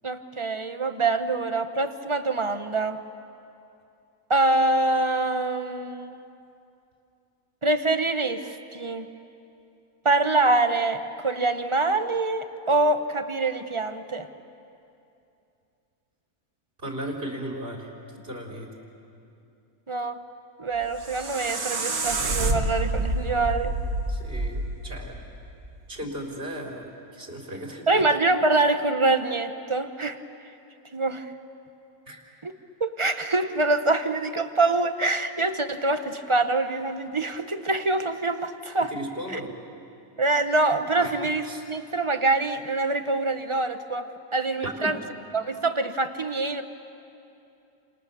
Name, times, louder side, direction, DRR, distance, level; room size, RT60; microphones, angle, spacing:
voice 1, 0.0-3.0 4.3-6.2 7.6-9.0 10.0-14.3 19.9-20.2 20.6-23.8 27.9-30.2 30.9-31.3 32.4-32.5 32.8-38.9 39.3-39.4 40.2-45.0 45.3-46.6, right 2 dB, 25° right, 8 dB, 0.9 m, -25 dB
voice 2, 16.8-17.9 18.2-18.7 24.1-25.2 25.9-28.0 32.1-32.2 38.9-39.5 41.0-41.1 41.4-41.6 44.6-44.9, right 1 dB, 40° right, -1 dB, 3.8 m, -36 dB
sound 1, 20.7-25.8, right 2 dB, 80° right, 2.1 m, -28 dB
30.0 x 28.0 x 6.9 m, 2.7 s
omnidirectional pair, 1.5 m